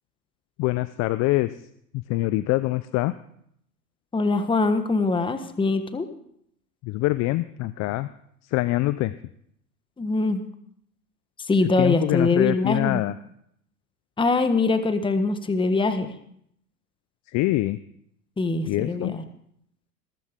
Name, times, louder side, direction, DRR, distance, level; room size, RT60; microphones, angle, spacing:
voice 1, 0.6-1.5 2.1-3.1 6.8-8.1 8.5-9.1 11.8-13.2 17.3-17.8 18.7-19.1, left 18 dB, 35° left, 15 dB, 0.5 m, -24 dB
voice 2, 4.1-6.1 10.0-10.5 11.5-13.0 14.2-16.1 18.4-19.2, left 3 dB, 10° left, 9 dB, 1.3 m, -23 dB
20.5 x 13.5 x 3.7 m, 0.71 s
hypercardioid pair, 90°, 48 cm